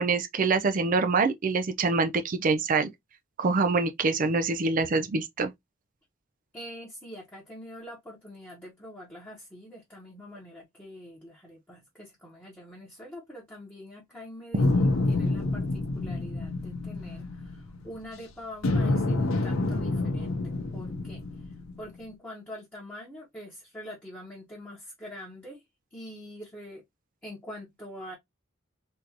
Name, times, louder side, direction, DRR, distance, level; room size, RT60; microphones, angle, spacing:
voice 1, 0.0-2.9 3.4-5.5, right 4 dB, 40° right, 0.4 m, -25 dB
voice 2, 6.5-25.6 25.9-26.8 27.2-28.2, left 1 dB, 10° left, 1.0 m, -44 dB
sound 1, 14.6-18.1 18.6-22.0, left 2 dB, 90° left, 0.7 m, -28 dB
3.6 x 2.6 x 2.8 m
head